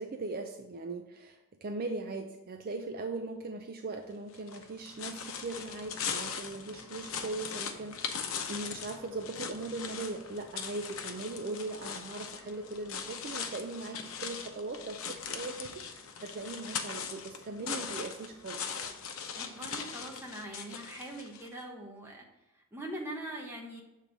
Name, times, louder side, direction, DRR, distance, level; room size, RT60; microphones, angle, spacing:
voice 1, 0.0-18.7, right 3 dB, 40° right, 5 dB, 0.4 m, -39 dB
sound 1, 4.3-21.5, left 6 dB, 65° left, 0.7 m, -40 dB
voice 2, 19.3-22.2 22.7-23.8, right 1 dB, 10° right, -1 dB, 1.1 m, -42 dB
6.9 x 3.7 x 5.9 m, 0.98 s
head